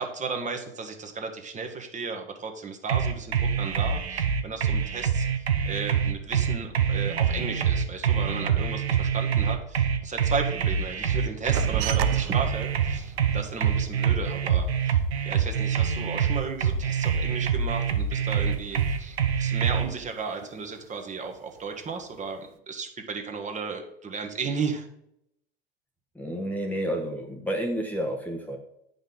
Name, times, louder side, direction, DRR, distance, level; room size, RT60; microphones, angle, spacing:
voice 1, 0.0-5.3 5.6-15.0 15.2-24.9, right 4 dB, 25° right, 4 dB, 1.3 m, -34 dB
sound 1, 2.9-19.9, right 7 dB, 85° right, 0.9 m, -25 dB
sound 2, 11.5-16.4 16.7-18.1 18.4-19.3 19.6-20.9 21.3-22.0, right 13 dB, 50° right, 0.6 m, -35 dB
voice 2, 26.1-28.6, right 1 dB, 5° left, 1 dB, 1.0 m, -30 dB
8.9 x 5.3 x 3.9 m, 0.77 s
hypercardioid pair, 85°, 31 cm